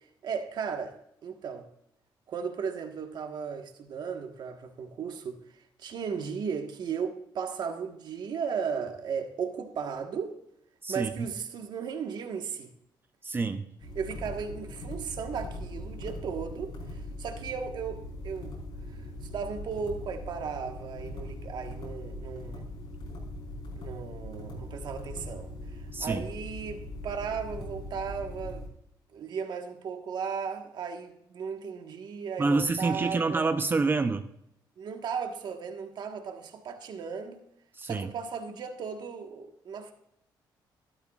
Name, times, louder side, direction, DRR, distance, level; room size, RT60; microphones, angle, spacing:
voice 1, 0.2-1.0 1.2-1.7 2.3-5.4 5.8-10.3 10.9-12.7 13.9-18.6 18.9-22.7 23.8-28.6 29.1-33.4 34.8-37.4 37.8-39.9, right 6 dB, 60° right, 1.4 m, -36 dB
voice 2, 10.8-11.3 13.2-13.7 25.9-26.2 32.4-34.3 37.7-38.1, right 3 dB, 25° right, 0.6 m, -27 dB
sound 1, 13.8-28.7, left 1 dB, 70° left, 4.6 m, -41 dB
13.0 x 12.0 x 2.4 m
cardioid pair, 110°, 8 cm